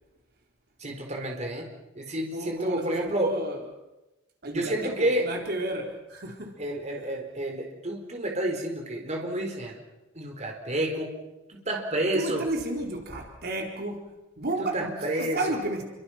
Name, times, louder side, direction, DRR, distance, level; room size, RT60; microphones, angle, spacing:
voice 1, 0.8-3.3 4.5-5.2 6.6-9.7 10.1-11.1 11.5-12.4 14.7-15.4, right 1 dB, 35° right, 1 dB, 4.4 m, -30 dB
voice 2, 2.3-3.6 4.4-6.6 12.1-15.8, right 2 dB, 55° right, 1 dB, 4.3 m, -32 dB
29.5 x 24.5 x 5.9 m, 1.0 s
head